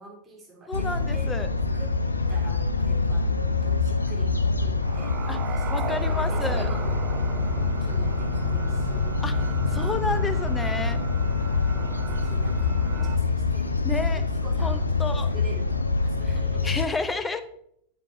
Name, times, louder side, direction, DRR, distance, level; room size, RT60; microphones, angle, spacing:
voice 1, 0.0-1.3 1.7-1.9 2.3-4.3 4.6-7.0 7.6-9.5 12.1-12.7 13.0-15.0 15.3-16.7, right 3 dB, 15° right, -3 dB, 3.2 m, -45 dB
sound 1, 0.7-16.9, left 4 dB, 80° left, 0.5 m, -25 dB
voice 2, 0.7-1.5 5.3-5.4 5.7-6.7 9.2-9.3 9.7-11.0 13.8-14.2 14.6-15.3 16.6-17.4, left 3 dB, 15° left, 11 dB, 0.6 m, -30 dB
sound 2, 4.8-13.2, right 6 dB, 35° right, 0.7 m, -37 dB
9.0 x 7.6 x 3.0 m, 0.70 s
figure-of-eight pair, 90°, 0 cm